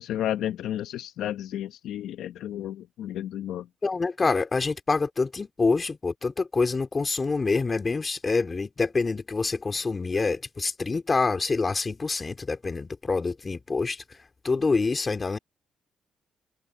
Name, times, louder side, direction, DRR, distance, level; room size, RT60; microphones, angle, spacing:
voice 1, 0.0-3.7, left 11 dB, 80° left, 1.0 m, -32 dB
voice 2, 3.8-14.0 14.4-15.4, left 4 dB, 30° left, 3.3 m, -26 dB
cardioid pair, 90°, 0 cm